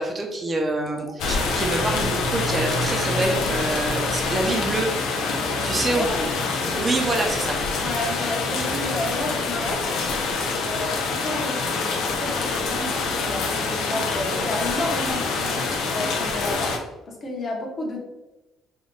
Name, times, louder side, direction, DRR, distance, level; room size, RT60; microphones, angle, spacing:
voice 1, 0.0-4.9 5.6-6.1 6.6-7.6, right 2 dB, 25° right, 2 dB, 0.8 m, -26 dB
sound 1, 1.2-16.8, left 3 dB, 75° left, 0.9 m, -26 dB
voice 2, 5.6-6.3 7.7-9.9 10.5-18.0, left 1 dB, 35° left, -1 dB, 1.3 m, -31 dB
5.3 x 2.5 x 3.9 m, 1.0 s
cardioid pair, 125°, 0 cm